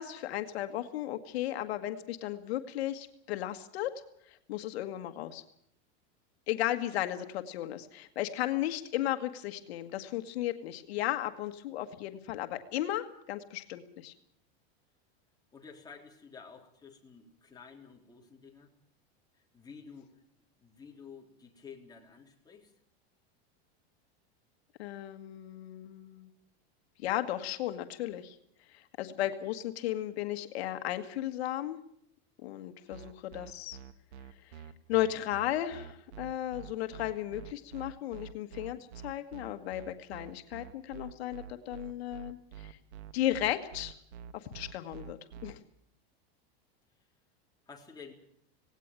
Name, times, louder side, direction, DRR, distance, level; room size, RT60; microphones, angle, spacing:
voice 1, 0.0-3.9 4.3-5.4 6.5-14.1 24.8-26.3 27.0-28.3 28.7-31.8 32.4-33.8 34.9-38.8 39.0-42.8 43.1-43.9 44.3-45.6, left 13 dB, 75° left, 8 dB, 1.8 m, -35 dB
voice 2, 15.5-18.8 19.5-20.1 20.6-22.7 38.7-38.9 47.7-48.1, left 5 dB, 10° left, 0 dB, 3.6 m, -51 dB
sound 1, 32.9-45.5, right 9 dB, 85° right, 1.7 m, -47 dB
18.5 x 17.5 x 9.0 m, 0.70 s
supercardioid pair, 145°, 32 cm